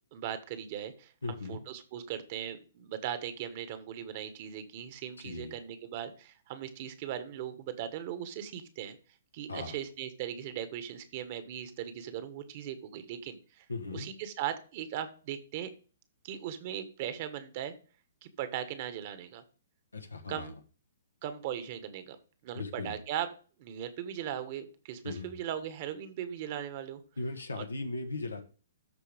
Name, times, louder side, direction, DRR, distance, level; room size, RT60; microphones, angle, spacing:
voice 1, 0.1-9.0 9.3-13.6 13.9-15.7 16.2-17.7 18.2-19.4 20.3-20.5 21.2-22.2 22.4-23.3 23.6-27.0 27.5-27.6, right 10 dB, 45° right, 11 dB, 1.4 m, -38 dB
voice 2, 1.2-1.6 5.2-5.5 9.5-9.8 13.7-14.1 19.9-20.5 22.5-23.0 25.0-25.3 27.2-28.4, left 3 dB, 85° left, 6 dB, 1.4 m, -38 dB
13.5 x 4.6 x 3.4 m, 0.37 s
figure-of-eight pair, 125°, 0 cm